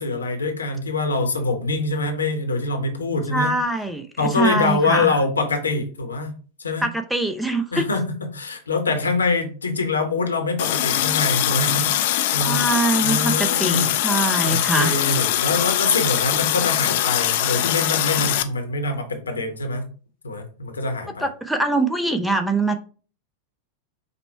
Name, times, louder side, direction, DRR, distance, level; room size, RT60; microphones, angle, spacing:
voice 1, 0.0-3.5 4.2-6.3 6.6-6.9 7.7-12.6 13.0-13.8 14.4-19.9 20.2-21.3, left 3 dB, 75° left, 4 dB, 0.9 m, -24 dB
voice 2, 3.3-5.1 6.8-7.8 12.4-14.9 21.2-22.8, right 2 dB, 5° right, 6 dB, 0.5 m, -23 dB
Water tap faucet, 10.6-18.4, left 13 dB, 50° left, 0.4 m, -22 dB
5.2 x 2.1 x 4.3 m, 0.39 s
figure-of-eight pair, 90°, 0 cm